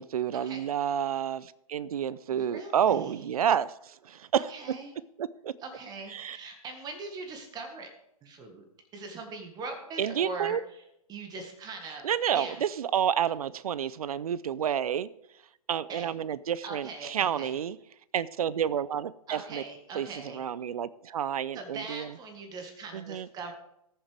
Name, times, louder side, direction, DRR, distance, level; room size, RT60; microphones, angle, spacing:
voice 1, 0.0-4.5 5.2-5.5 6.1-6.4 10.0-10.6 12.0-15.1 15.7-17.8 18.1-19.6 19.9-22.1 22.9-23.3, right 9 dB, 70° right, 18 dB, 0.5 m, -29 dB
voice 2, 2.3-3.3 4.5-4.9 5.6-7.9 8.2-8.6 8.9-10.8 11.1-12.0 12.3-12.6 15.9-16.1 16.6-17.6 19.3-20.4 21.5-23.5, right 3 dB, 20° right, 5 dB, 1.6 m, -41 dB
19.0 x 7.3 x 3.4 m, 0.79 s
hypercardioid pair, 125°, 19 cm